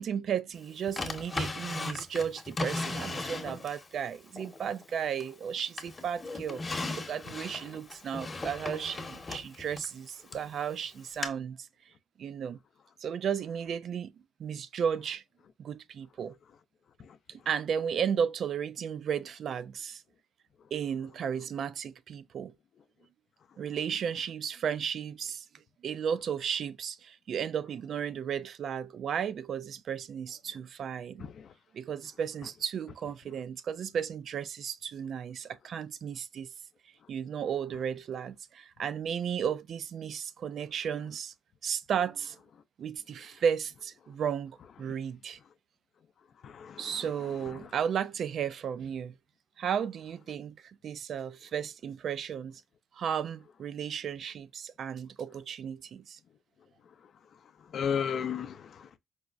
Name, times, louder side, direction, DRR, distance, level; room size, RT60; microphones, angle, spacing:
voice 1, 0.0-6.6 6.9-11.7 12.2-12.6 13.0-14.1 14.4-15.2 15.6-16.3 17.3-20.0 20.7-22.5 23.6-25.4 25.8-31.3 31.7-36.5 37.1-41.3 41.6-42.4 42.8-45.4 46.8-49.1 49.6-50.6 50.8-52.6 52.9-56.2, right 8 dB, 60° right, 0.3 m, -34 dB
Drawer open or close, 1.0-3.9 4.4-5.4 5.8-10.5 11.2-11.3, left 3 dB, 25° left, 0.9 m, -37 dB
voice 2, 31.2-31.5 46.4-47.1 47.5-47.7 57.7-59.0, left 7 dB, 60° left, 0.4 m, -35 dB
4.6 x 2.1 x 2.4 m
cardioid pair, 90°, 0 cm